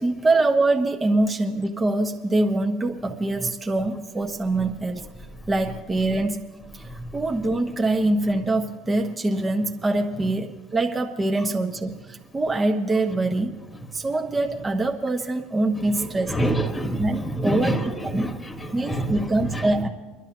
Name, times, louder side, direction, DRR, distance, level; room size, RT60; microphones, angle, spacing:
voice 1, 0.0-5.0 5.5-6.4 6.9-13.5 13.9-16.3 17.0-18.3 18.7-19.9, right 2 dB, 20° right, 2 dB, 1.2 m, -24 dB
voice 2, 6.8-7.1 15.7-19.7, right 1 dB, 15° left, 6 dB, 1.5 m, -28 dB
29.5 x 11.0 x 3.0 m, 1.3 s
hypercardioid pair, 85°, 0 cm